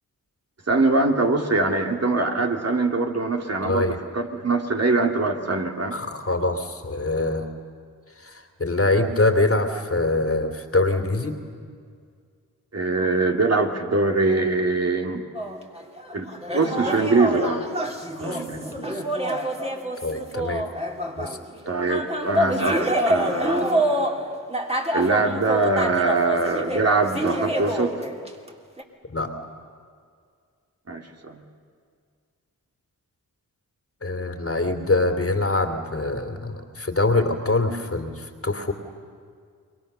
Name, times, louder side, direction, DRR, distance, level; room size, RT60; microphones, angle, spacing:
voice 1, 0.7-6.0 12.7-15.2 16.1-17.7 18.2-18.6 21.7-23.7 24.9-28.0 30.9-31.4, right 3 dB, 45° right, 2 dB, 2.7 m, -23 dB
voice 2, 3.6-4.0 5.9-7.5 8.2-11.3 18.2-19.0 20.0-20.6 21.2-21.4 29.1-29.3 34.0-38.7, left 2 dB, 40° left, 6 dB, 2.7 m, -24 dB
sound 1, 15.3-21.6 21.9-28.5 28.8-28.9, right 1 dB, 15° right, 3.1 m, -27 dB
28.5 x 22.0 x 6.8 m, 2.1 s
cardioid pair, 40°, 36 cm